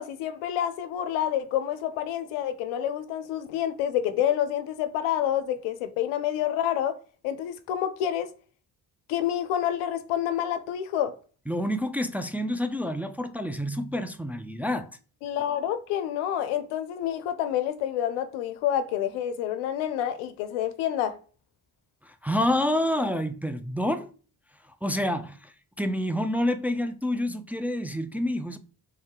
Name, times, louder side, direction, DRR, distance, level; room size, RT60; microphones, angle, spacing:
voice 1, 0.0-7.0 7.2-8.3 9.1-11.1 15.2-21.2, left 10 dB, 90° left, 0.6 m, -28 dB
voice 2, 11.5-14.9 22.0-24.1 24.8-28.6, left 1 dB, 5° right, 0.4 m, -28 dB
3.4 x 2.7 x 3.6 m
hypercardioid pair, 40°, 48 cm